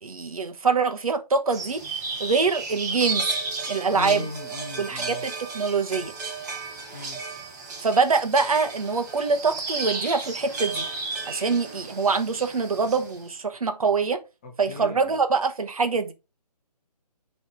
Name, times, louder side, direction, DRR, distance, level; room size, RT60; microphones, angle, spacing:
voice 1, 0.0-3.3 3.7-4.3 4.8-6.1 7.8-10.9 11.3-14.2 14.6-16.1, right 4 dB, 60° right, 1.0 m, -24 dB
sound 1, 1.5-13.2, right 3 dB, 25° right, 1.4 m, -33 dB
voice 2, 3.9-5.3 6.9-7.2 14.4-15.2, left 3 dB, 20° left, 0.8 m, -37 dB
9.8 x 3.3 x 3.6 m
figure-of-eight pair, 150°, 21 cm